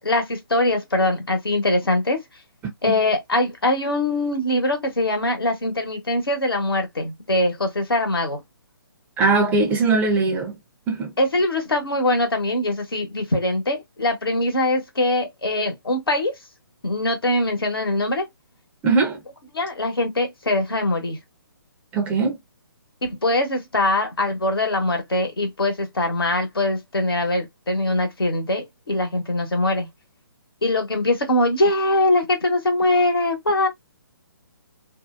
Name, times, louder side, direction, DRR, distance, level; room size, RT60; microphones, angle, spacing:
voice 1, 0.0-2.2 2.8-8.4 11.2-16.3 16.8-18.3 19.5-21.2 23.0-29.9 30.6-33.7, left 2 dB, 80° left, 1.0 m, -22 dB
voice 2, 9.2-10.6 10.9-11.1 18.8-19.2 21.9-22.4, right 3 dB, 15° right, 0.5 m, -20 dB
2.5 x 2.0 x 2.4 m
figure-of-eight pair, 140°, 12 cm